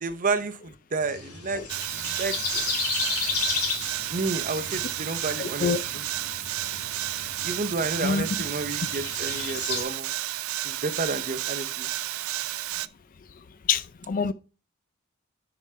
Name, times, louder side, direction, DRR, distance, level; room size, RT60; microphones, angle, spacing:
voice 1, 0.0-1.6 1.9-2.4 4.1-5.7 7.4-10.1 10.6-11.9, right 3 dB, 35° right, 0.7 m, -30 dB
sound 1, 1.0-9.8, left 5 dB, 90° left, 2.1 m, -34 dB
sound 2, 1.7-12.9, right 14 dB, 75° right, 0.4 m, -32 dB
voice 2, 5.4-5.8 8.0-8.2 13.7-14.3, left 6 dB, 40° left, 0.4 m, -26 dB
10.0 x 4.9 x 3.2 m
head